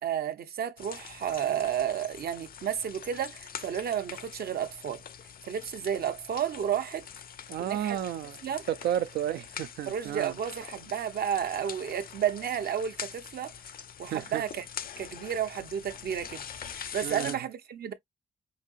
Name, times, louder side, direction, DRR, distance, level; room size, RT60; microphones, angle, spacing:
voice 1, 0.0-5.0 5.4-7.1 7.6-8.0 8.4-8.7 9.9-13.5 14.0-14.6 15.0-17.9, right 9 dB, 70° right, 0.8 m, -32 dB
sound 1, 0.8-17.4, left 8 dB, 65° left, 0.5 m, -44 dB
voice 2, 7.5-8.4 8.7-10.3 14.1-14.4 17.0-17.4, right 11 dB, 90° right, 0.4 m, -32 dB
5.2 x 2.7 x 2.5 m
cardioid pair, 60°, 16 cm